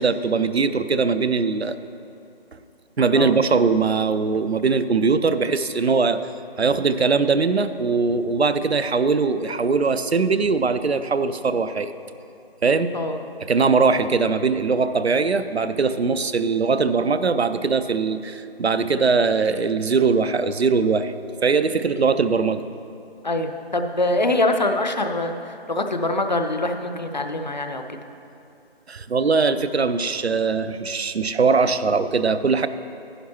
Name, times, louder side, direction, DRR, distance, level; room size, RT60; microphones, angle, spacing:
voice 1, 0.0-1.8 3.0-6.2 6.6-11.9 12.6-12.9 13.4-21.1 21.4-22.6 28.9-32.7, right 4 dB, 85° right, 12 dB, 0.5 m, -21 dB
voice 2, 23.2-28.0, left 2 dB, 45° left, 6 dB, 0.6 m, -24 dB
11.0 x 10.5 x 2.9 m, 2.6 s
figure-of-eight pair, 155°, 31 cm